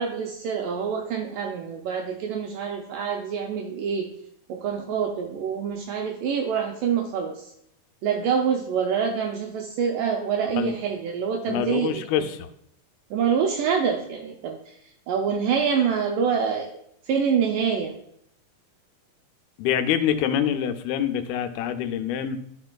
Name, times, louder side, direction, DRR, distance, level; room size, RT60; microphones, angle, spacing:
voice 1, 0.0-4.1 4.5-7.5 8.0-12.0 13.1-14.8 15.1-16.7 17.1-18.0, right 7 dB, 80° right, 2 dB, 1.9 m, -26 dB
voice 2, 11.5-12.5 19.6-22.4, left 9 dB, 85° left, 8 dB, 2.5 m, -25 dB
12.5 x 4.3 x 2.2 m, 0.74 s
omnidirectional pair, 4.3 m